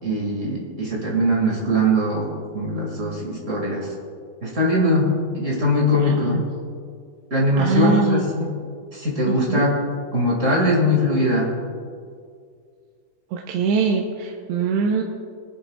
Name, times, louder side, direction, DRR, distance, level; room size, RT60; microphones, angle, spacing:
voice 1, 0.0-3.9 4.4-6.4 7.3-8.5 8.9-9.8 10.1-11.5, equal, 35° right, -2 dB, 1.3 m, -21 dB
voice 2, 6.0-6.4 7.6-8.5 9.3-9.7 13.3-15.0, right 5 dB, 90° right, 0 dB, 3.0 m, -23 dB
23.0 x 11.0 x 2.4 m, 2.1 s
omnidirectional pair, 4.8 m